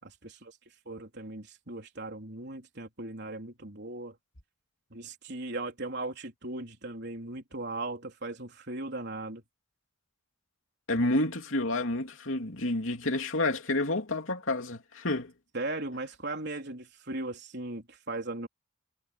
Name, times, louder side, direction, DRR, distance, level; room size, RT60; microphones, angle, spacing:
voice 1, 0.0-0.5 0.9-4.1 4.9-9.4 15.5-18.5, right 2 dB, 55° right, 3.9 m, -38 dB
voice 2, 10.9-15.3, left 2 dB, 70° left, 3.0 m, -29 dB
head